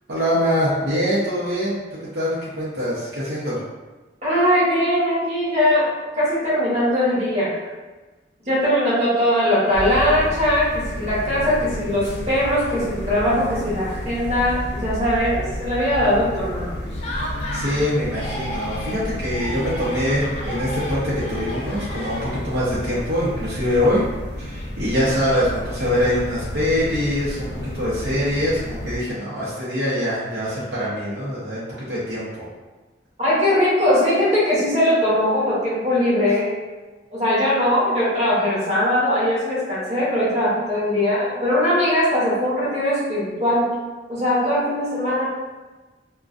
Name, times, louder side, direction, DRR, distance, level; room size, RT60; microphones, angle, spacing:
voice 1, 0.1-3.6 17.5-24.0 24.4-27.5 27.7-32.5, equal, 70° right, -9 dB, 0.7 m, -24 dB
voice 2, 4.2-5.9 6.1-7.6 8.5-16.8 33.2-36.5 37.1-43.7 44.1-45.3, left 1 dB, 40° right, -9 dB, 0.9 m, -20 dB
sound 1, 9.7-29.0, equal, 80° left, 0.6 m, -31 dB
Laughter, 16.9-17.8 18.1-19.0 19.3-22.6, left 1 dB, 40° left, 0.4 m, -33 dB
2.4 x 2.2 x 2.4 m, 1.2 s
head